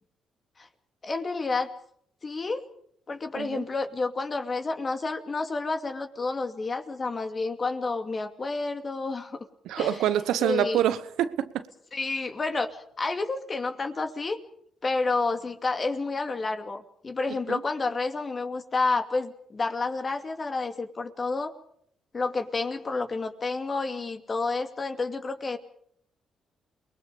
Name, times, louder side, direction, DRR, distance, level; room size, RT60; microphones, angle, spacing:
voice 1, 1.0-1.7 2.2-2.6 3.1-9.4 9.8-10.0 10.4-10.8 11.9-12.7 13.0-14.4 14.8-21.5 22.1-25.6, left 3 dB, 40° left, 2.5 m, -30 dB
voice 2, 9.6-11.7 17.5-17.6, right 11 dB, 80° right, 1.0 m, -26 dB
28.5 x 20.0 x 5.2 m
supercardioid pair, 55°, 0 cm